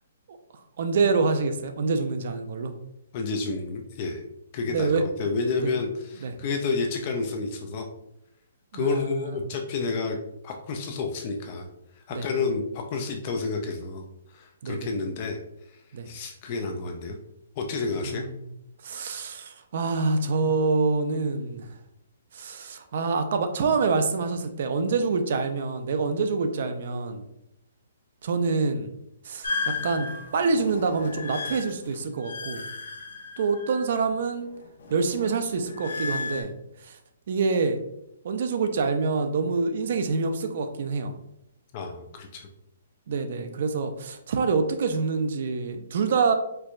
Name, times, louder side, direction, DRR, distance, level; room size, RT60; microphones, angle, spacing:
voice 1, 0.8-2.7 4.7-5.0 5.6-5.7 6.2-6.3 8.7-9.3 12.1-12.4 14.6-14.9 15.9-16.1 18.0-18.3 18.8-21.7 22.3-27.2 28.2-28.9 29.2-32.6 33.4-34.5 34.9-36.5 36.8-37.0 37.3-37.8 38.2-41.1 43.1-46.3, right 4 dB, 50° right, 7 dB, 0.4 m, -26 dB
voice 2, 3.1-4.2 4.5-7.9 8.7-10.2 10.4-11.7 12.0-14.0 14.3-15.4 15.7-15.8 16.1-17.2 17.6-18.3 41.7-42.5, left 4 dB, 30° left, 3 dB, 0.3 m, -30 dB
sound 1, 29.4-34.2 34.5-36.4, left 4 dB, 75° left, 0.8 m, -34 dB
4.4 x 2.2 x 2.5 m, 0.83 s
hypercardioid pair, 170°, 0 cm